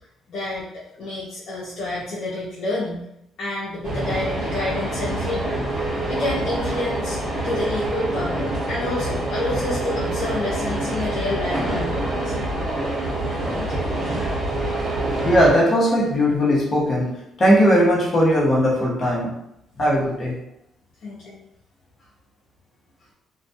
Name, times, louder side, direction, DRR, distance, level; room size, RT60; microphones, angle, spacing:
voice 1, 0.3-3.0 3.4-5.6 6.1-7.2 7.4-12.3 13.5-13.9 21.0-21.4, left 1 dB, 65° left, -7 dB, 0.5 m, -29 dB
sound 1, 3.8-15.5, right 1 dB, 40° right, 0.9 m, -26 dB
voice 2, 15.2-19.3 19.8-20.4, equal, 35° left, -4 dB, 0.8 m, -18 dB
2.2 x 2.1 x 2.6 m, 0.80 s
cardioid pair, 95°, 0 cm